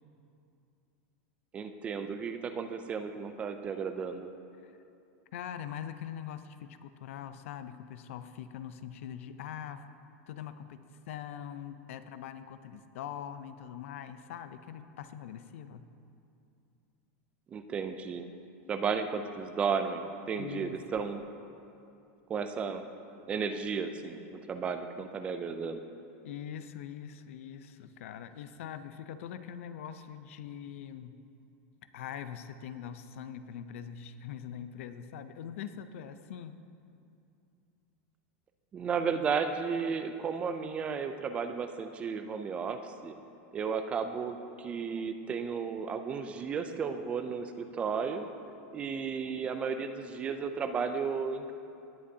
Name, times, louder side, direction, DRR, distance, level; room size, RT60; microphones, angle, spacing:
voice 1, 1.5-4.3 17.5-18.3 18.7-21.2 22.3-22.9 23.3-25.8 38.7-43.2 43.5-48.3 48.7-51.5, right 6 dB, 15° right, 8 dB, 0.3 m, -34 dB
voice 2, 5.3-9.9 10.3-15.8 20.4-20.8 26.2-31.2 31.9-36.5, left 9 dB, 65° left, 11 dB, 0.5 m, -43 dB
18.5 x 7.6 x 2.7 m, 2.6 s
supercardioid pair, 170°, 8 cm